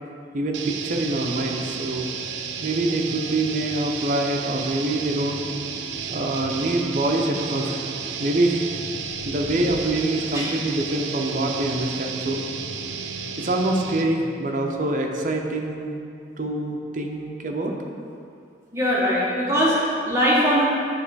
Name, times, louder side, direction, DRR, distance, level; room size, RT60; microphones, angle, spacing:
voice 1, 0.3-2.1 2.6-5.4 6.1-7.8 8.2-8.6 9.2-12.4 13.4-16.0 16.4-17.7, right 2 dB, 45° right, 1 dB, 0.6 m, -25 dB
sound 1, 0.5-14.2, right 6 dB, 90° right, 0.4 m, -32 dB
voice 2, 18.7-20.6, equal, 15° right, -7 dB, 1.1 m, -21 dB
8.2 x 3.1 x 4.7 m, 2.4 s
head